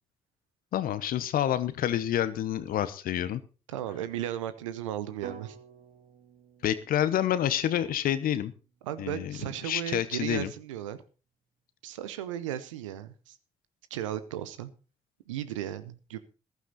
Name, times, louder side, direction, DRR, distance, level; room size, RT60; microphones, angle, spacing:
voice 1, 0.7-3.4 6.6-8.5 9.0-9.4 9.6-10.5, left 11 dB, 65° left, 14 dB, 1.0 m, -28 dB
voice 2, 3.7-5.6 8.8-11.0 11.8-13.4 13.9-14.7 15.3-16.2, right 11 dB, 90° right, 13 dB, 0.7 m, -35 dB
sound 1, 5.2-9.3, right 6 dB, 60° right, 1.6 m, -50 dB
14.0 x 11.5 x 4.0 m, 0.34 s
hypercardioid pair, 40°, 16 cm